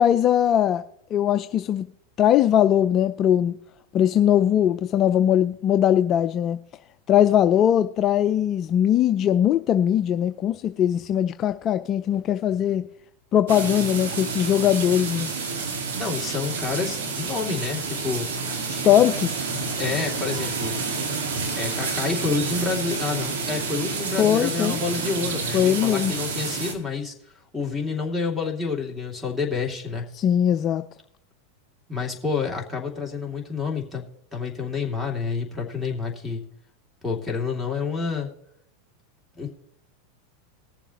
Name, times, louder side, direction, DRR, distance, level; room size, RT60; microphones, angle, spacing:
voice 1, 0.0-1.9 2.2-3.6 3.9-6.6 7.1-12.9 13.3-15.3 18.7-19.5 24.2-24.8 25.5-26.1 30.1-30.8, left 10 dB, 40° left, 0.4 m, -20 dB
sound 1, 13.5-26.7, right 4 dB, 80° right, 1.8 m, -29 dB
voice 2, 15.9-18.3 19.8-20.8 21.5-27.1 27.5-30.1 31.9-34.0 34.3-36.4 37.0-38.3 39.3-39.5, left 4 dB, ahead, 2.6 m, -28 dB
20.5 x 7.0 x 2.9 m
hypercardioid pair, 110°, 0 cm